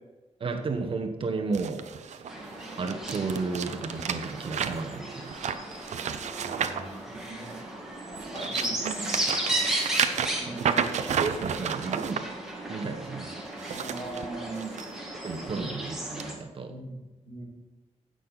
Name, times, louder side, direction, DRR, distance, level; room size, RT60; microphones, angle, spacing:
voice 1, 0.4-2.3 2.8-5.3 10.5-12.2 12.7-13.4 15.2-16.7, right 4 dB, 50° right, 4 dB, 1.1 m, -33 dB
sound 1, 1.5-7.7 8.1-12.2 13.4-14.9 15.3-15.5 16.2-16.3, right 7 dB, 85° right, 0.7 m, -32 dB
sound 2, 2.3-16.3, right 1 dB, 5° right, 2.1 m, -35 dB
voice 2, 6.4-7.6 8.2-9.1 10.3-10.9 13.7-14.8 15.5-15.6 16.7-17.0 17.2-17.4, right 2 dB, 65° left, -2 dB, 4.0 m, -40 dB
16.0 x 6.5 x 4.1 m, 1.1 s
wide cardioid pair, 165°, 12 cm